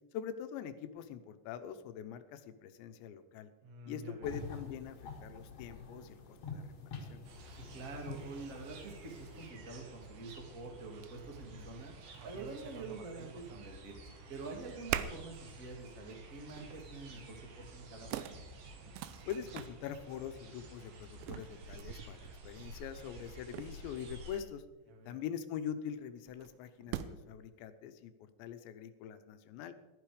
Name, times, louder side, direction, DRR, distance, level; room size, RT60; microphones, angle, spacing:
voice 1, 0.1-3.5 3.9-6.2 6.5-6.6 7.1-7.2 19.3-24.6 25.1-29.7, left 9 dB, 75° left, 10 dB, 2.9 m, -43 dB
voice 2, 3.6-4.4 7.5-11.9 12.2-13.9 14.3-18.4 24.9-25.2, right 3 dB, 35° right, 1 dB, 1.3 m, -47 dB
sound 1, 4.2-9.5, left 5 dB, 50° left, 1.9 m, -47 dB
sound 2, 7.2-24.4, right 1 dB, 55° right, 3.2 m, -52 dB
sound 3, 10.2-10.3 10.9-11.1 11.6-13.7 14.0-14.5 14.9-15.4 15.8-16.0 16.5-16.9 17.6-17.7 18.1-19.7 21.2-24.1 26.3-27.4, right 11 dB, 80° right, 2.8 m, -44 dB
17.5 x 11.5 x 5.0 m, 1.1 s
omnidirectional pair, 5.7 m